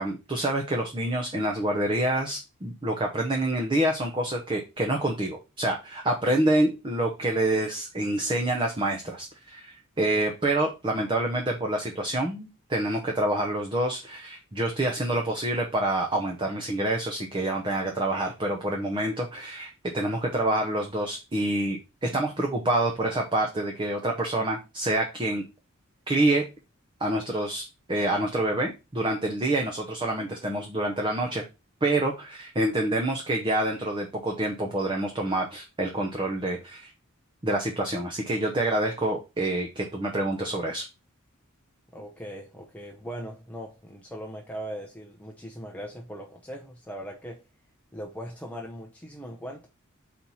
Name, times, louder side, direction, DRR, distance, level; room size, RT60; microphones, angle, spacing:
voice 1, 0.0-25.4 26.1-26.4 27.0-31.4 31.8-36.9 37.4-40.8, right 1 dB, 25° right, 0.7 m, -27 dB
voice 2, 41.9-47.4 47.9-49.7, equal, 5° left, 0.6 m, -39 dB
4.5 x 4.2 x 5.4 m
head